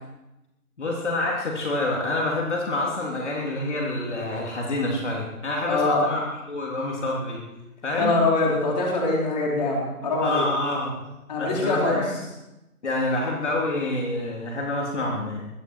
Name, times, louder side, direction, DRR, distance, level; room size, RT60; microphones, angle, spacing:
voice 1, 0.8-7.4 7.8-8.1 10.2-11.0 11.4-12.2 12.8-15.5, left 2 dB, 50° left, -2 dB, 3.7 m, -27 dB
voice 2, 5.7-6.1 8.0-10.5 11.3-12.0, left 2 dB, 30° left, -3 dB, 4.4 m, -23 dB
21.0 x 14.5 x 4.7 m, 0.96 s
figure-of-eight pair, 160°, 45 cm